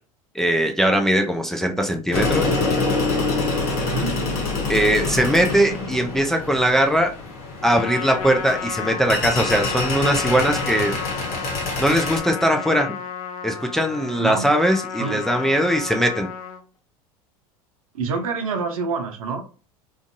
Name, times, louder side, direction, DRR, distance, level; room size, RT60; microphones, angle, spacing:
voice 1, 0.3-2.5 4.7-7.1 7.6-10.9 11.8-12.9 13.4-16.3, right 1 dB, ahead, 3 dB, 0.5 m, -20 dB
sound 1, 2.1-12.2, left 3 dB, 50° left, 1.0 m, -26 dB
Trumpet, 7.6-16.6, left 7 dB, 70° left, 0.6 m, -33 dB
voice 2, 14.2-14.5 15.0-15.3 17.9-19.4, right 4 dB, 70° right, 5 dB, 0.7 m, -27 dB
2.5 x 2.4 x 2.5 m, 0.37 s
hypercardioid pair, 80°, 18 cm